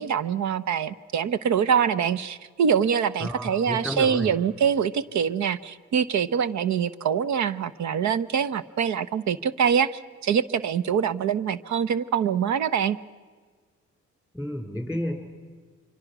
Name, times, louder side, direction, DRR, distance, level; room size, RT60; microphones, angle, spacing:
voice 1, 0.0-13.0, right 7 dB, 70° right, 16 dB, 0.9 m, -24 dB
voice 2, 3.2-4.3 14.3-15.1, equal, 5° right, 5 dB, 4.8 m, -31 dB
25.5 x 24.5 x 6.1 m, 1.5 s
cardioid pair, 90°, 30 cm